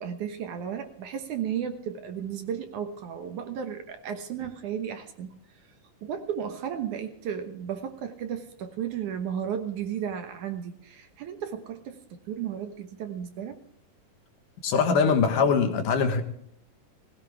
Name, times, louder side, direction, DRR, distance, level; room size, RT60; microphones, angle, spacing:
voice 1, 0.0-5.4 6.0-13.6, right 8 dB, 65° right, 6 dB, 2.5 m, -34 dB
voice 2, 14.6-16.2, left 5 dB, 65° left, 6 dB, 2.9 m, -22 dB
20.5 x 17.0 x 3.5 m, 0.68 s
omnidirectional pair, 4.2 m